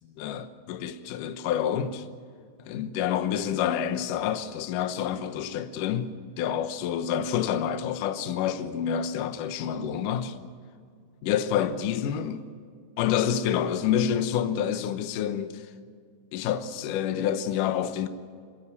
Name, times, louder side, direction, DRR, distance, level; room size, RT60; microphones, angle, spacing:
voice 1, 0.2-2.1 2.7-10.4 11.2-12.4 13.0-15.6 16.3-18.1, left 9 dB, 80° left, 1.9 m, -28 dB
26.5 x 12.0 x 8.3 m
omnidirectional pair, 5.1 m